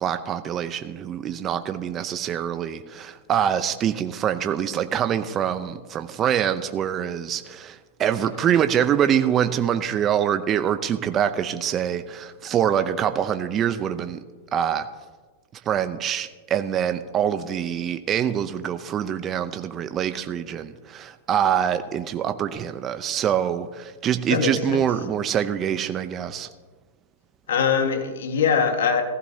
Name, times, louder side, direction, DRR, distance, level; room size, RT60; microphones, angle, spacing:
voice 1, 0.0-14.2 14.5-14.9 15.7-26.5, right 9 dB, 30° right, 10 dB, 0.6 m, -25 dB
voice 2, 24.3-24.8 27.5-29.0, left 6 dB, 75° left, 5 dB, 1.6 m, -22 dB
15.0 x 15.0 x 2.8 m, 1.3 s
hypercardioid pair, 110°, 0 cm